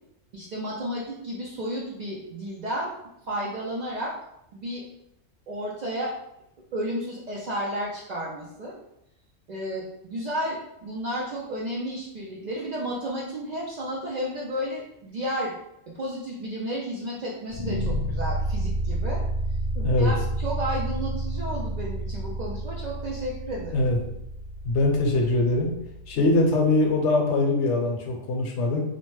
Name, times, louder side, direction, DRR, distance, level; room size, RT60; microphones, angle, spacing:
voice 1, 0.3-2.9 3.3-4.1 4.5-4.8 5.5-6.1 6.7-8.8 9.5-15.6 16.0-19.2 20.0-23.8, equal, 70° right, -5 dB, 0.4 m, -32 dB
sound 1, 17.5-26.5, right 1 dB, 90° left, 0.3 m, -30 dB
voice 2, 19.8-20.1 23.7-24.0 24.6-25.7 26.1-28.8, left 2 dB, 70° left, 1 dB, 0.9 m, -22 dB
2.8 x 2.0 x 3.1 m, 0.81 s
omnidirectional pair, 1.3 m